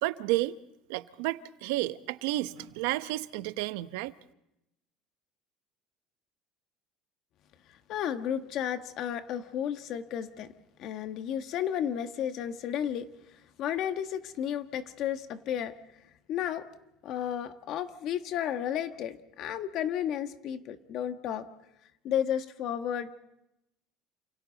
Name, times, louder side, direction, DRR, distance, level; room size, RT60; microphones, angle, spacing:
voice 1, 0.0-0.6 0.9-4.1, right 17 dB, 85° right, 13 dB, 0.9 m, -31 dB
voice 2, 7.9-10.5 10.8-13.1 13.6-15.7 16.3-16.6 17.0-21.4 22.0-23.2, left 9 dB, 50° left, 8 dB, 1.5 m, -32 dB
29.0 x 27.5 x 4.1 m, 0.86 s
cardioid pair, 145°, 0 cm